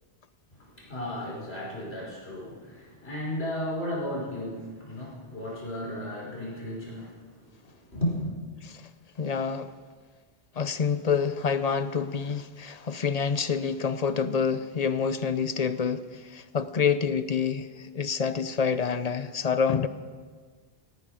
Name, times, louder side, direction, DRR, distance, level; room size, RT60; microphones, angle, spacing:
voice 1, 0.5-8.3, left 1 dB, 75° left, -5 dB, 5.5 m, -34 dB
voice 2, 9.2-9.7 10.6-19.9, left 6 dB, 45° left, 12 dB, 0.7 m, -27 dB
18.5 x 15.5 x 5.0 m, 1.5 s
omnidirectional pair, 1.0 m